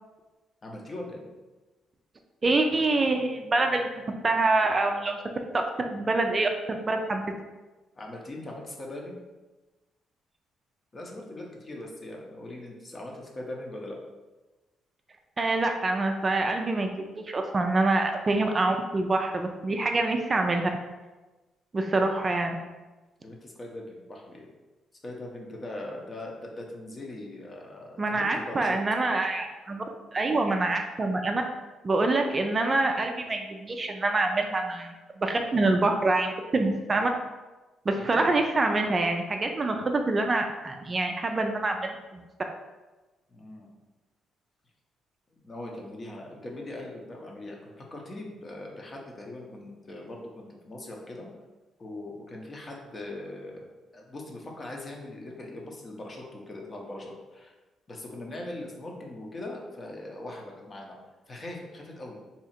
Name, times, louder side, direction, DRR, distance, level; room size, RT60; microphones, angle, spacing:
voice 1, 0.6-1.2 7.9-9.2 10.9-14.0 23.2-24.5 25.0-28.8 38.0-38.3 43.3-43.7 45.3-51.3 51.8-53.7 53.9-57.5 57.9-61.0 61.3-62.2, left 1 dB, 35° left, 0 dB, 0.7 m, -40 dB
voice 2, 2.4-3.9 4.2-5.2 5.8-7.3 15.4-20.7 21.7-22.6 28.0-29.8 30.1-31.4 31.8-37.1 37.9-42.2, right 2 dB, 30° right, 4 dB, 0.3 m, -26 dB
2.8 x 2.4 x 4.2 m, 1.2 s
cardioid pair, 90°, 0 cm